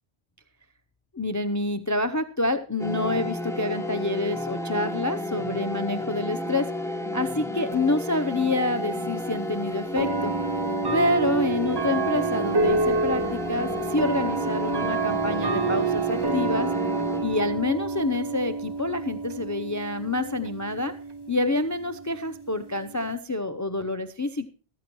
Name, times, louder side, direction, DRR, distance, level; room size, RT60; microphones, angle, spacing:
voice 1, 1.1-6.7 7.1-10.3 10.9-16.7 17.2-20.9 21.3-24.5, left 2 dB, 20° left, 11 dB, 0.7 m, -27 dB
sound 1, 2.8-17.7, left 1 dB, 5° left, 1.2 m, -32 dB
sound 2, 7.7-7.8 8.9-9.0 10.0-23.2, right 4 dB, 30° right, 0.5 m, -28 dB
14.5 x 14.0 x 3.1 m, 0.38 s
omnidirectional pair, 1.1 m